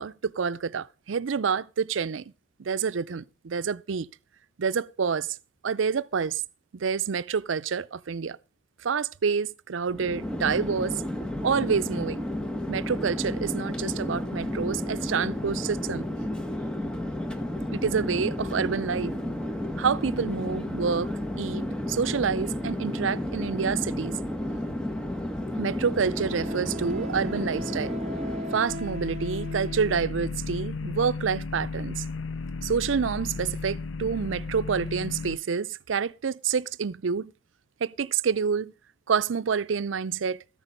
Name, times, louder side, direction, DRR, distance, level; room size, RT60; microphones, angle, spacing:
voice 1, 0.0-2.2 2.6-4.1 4.6-5.4 5.6-6.4 6.7-8.4 8.8-11.0 11.4-12.2 12.7-16.0 17.7-19.1 19.8-21.6 21.9-24.2 25.6-27.9 28.5-32.0 32.6-37.3 37.8-38.7 39.1-40.4, right 6 dB, 90° right, 0.5 m, -28 dB
Chatter / Fixed-wing aircraft airplane, 9.9-28.8, left 1 dB, 5° left, 1.0 m, -32 dB
Wind instrument woodwind instrument, 24.9-25.0 26.2-30.2, right 1 dB, 35° right, 0.8 m, -39 dB
sound 1, 28.7-35.4, left 4 dB, 80° left, 0.5 m, -34 dB
13.5 x 9.1 x 5.3 m
head